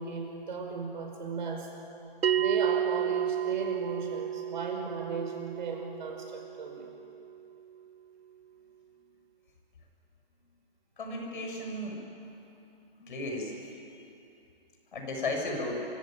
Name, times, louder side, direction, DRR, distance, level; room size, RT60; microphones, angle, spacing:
voice 1, 0.0-1.7 2.3-6.9, right 4 dB, 50° right, 2 dB, 5.5 m, -36 dB
Bell, 2.2-7.3, right 9 dB, 80° right, 0.6 m, -31 dB
voice 2, 11.0-12.0 13.0-13.6 14.9-15.9, left 2 dB, 55° left, 2 dB, 6.4 m, -34 dB
27.0 x 17.0 x 9.1 m, 2.8 s
hypercardioid pair, 155°, 30 cm